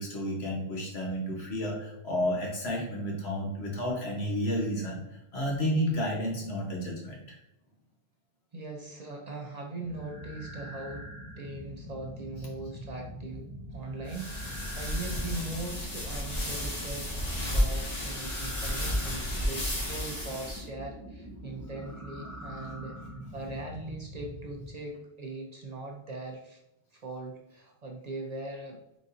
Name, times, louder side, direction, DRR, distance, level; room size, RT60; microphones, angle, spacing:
voice 1, 0.0-7.4 18.8-18.9, equal, 80° left, -3 dB, 1.5 m, -31 dB
voice 2, 8.5-11.1 11.4-23.0 23.3-26.6 26.9-28.8, right 2 dB, 45° right, 1 dB, 0.6 m, -40 dB
sound 1, 9.8-24.7, equal, 5° left, 0.6 m, -44 dB
sound 2, 14.1-20.6, left 1 dB, 40° left, 1.1 m, -32 dB
4.0 x 3.8 x 2.6 m, 0.87 s
omnidirectional pair, 1.1 m